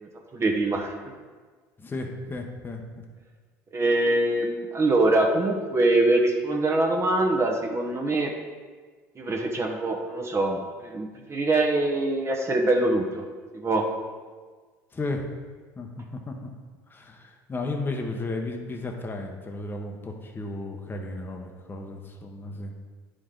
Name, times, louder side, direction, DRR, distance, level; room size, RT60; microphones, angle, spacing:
voice 1, 0.0-0.9 3.7-8.3 9.2-13.2 13.5-13.9, right 2 dB, 30° right, 2 dB, 1.1 m, -24 dB
voice 2, 1.8-3.0 14.9-15.2 15.8-16.5 16.9-22.7, left 2 dB, 25° left, 2 dB, 1.0 m, -34 dB
9.4 x 5.1 x 3.8 m, 1.5 s
supercardioid pair, 85°, 9 cm